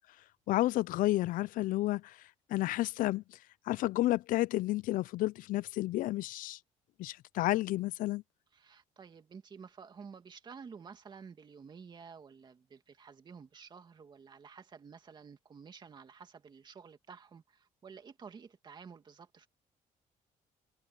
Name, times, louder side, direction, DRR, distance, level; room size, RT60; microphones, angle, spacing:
voice 1, 0.5-2.2 2.5-3.2 3.7-6.6 7.0-8.2, left 16 dB, 75° left, 0.4 m, -31 dB
voice 2, 8.5-19.5, right 6 dB, 30° right, 2.3 m, -51 dB
cardioid pair, 165°, 14 cm